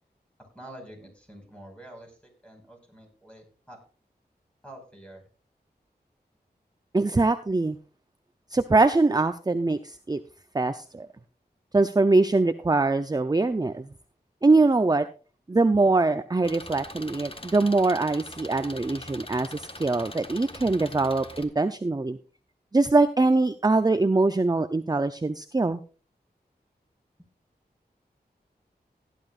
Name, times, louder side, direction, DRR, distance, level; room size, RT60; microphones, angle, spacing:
voice 1, 0.4-2.2 2.4-3.8 4.6-5.3, right 1 dB, 5° left, 2 dB, 5.3 m, -47 dB
voice 2, 6.9-7.8 8.5-10.2 10.5-11.1 11.7-13.9 14.4-15.1 15.5-22.2 22.7-25.8, right 3 dB, 25° right, 10 dB, 0.6 m, -23 dB
Engine, 16.4-21.4, left 2 dB, 30° left, 1.5 m, -42 dB
17.0 x 11.0 x 2.5 m, 0.36 s
cardioid pair, 50°, 17 cm